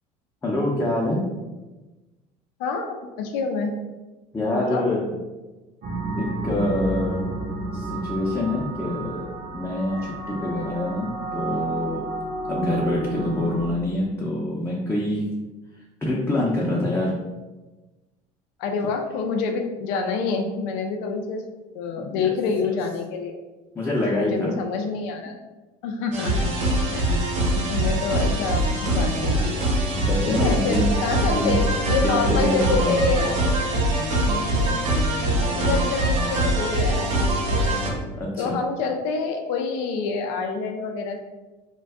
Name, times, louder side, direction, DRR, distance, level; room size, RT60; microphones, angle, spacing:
voice 1, 0.4-1.2 4.3-5.0 6.1-7.2 7.7-9.3 9.5-12.1 12.5-15.3 16.0-17.1 22.0-22.3 23.7-24.6 28.2-28.3 30.0-30.9 31.4-31.5 32.0-33.4 38.2-38.6, left 1 dB, 15° left, -4 dB, 0.5 m, -26 dB
voice 2, 2.6-3.7 4.5-4.9 18.6-21.4 21.7-23.4 24.1-25.4 25.8-26.5 26.9-27.2 27.5-29.8 30.2-33.5 34.2-34.8 35.5-37.7 38.4-41.2, left 4 dB, 80° left, 4 dB, 0.4 m, -27 dB
sound 1, 5.8-13.6, right 2 dB, 55° right, 0.7 m, -31 dB
sound 2, 26.1-37.9, right 1 dB, 90° right, 0.9 m, -23 dB
2.5 x 2.2 x 3.4 m, 1.2 s
supercardioid pair, 95°, 17 cm